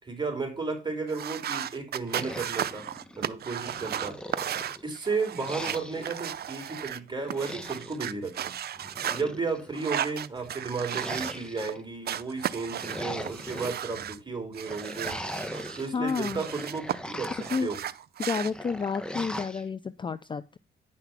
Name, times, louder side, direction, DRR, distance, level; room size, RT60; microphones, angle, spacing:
voice 1, 0.0-2.9 3.2-4.2 4.8-8.6 9.1-15.2 15.8-17.8, right 4 dB, 25° right, 4.0 m, -33 dB
sound 1, 1.1-7.0 7.3-9.2 9.7-11.7 12.0-14.2 14.5-16.9 17.2-18.5, right 10 dB, 50° right, 0.6 m, -35 dB
sound 2, 2.1-3.2 3.6-4.9 5.4-6.2 7.2-8.0 8.8-9.7 10.8-11.8 12.6-13.8 14.6-15.9 16.3-17.6 18.5-19.6, equal, 5° left, 1.3 m, -39 dB
voice 2, 15.9-16.4 17.5-17.7 18.2-20.6, left 5 dB, 25° left, 0.4 m, -30 dB
10.0 x 5.9 x 5.9 m
cardioid pair, 90°, 20 cm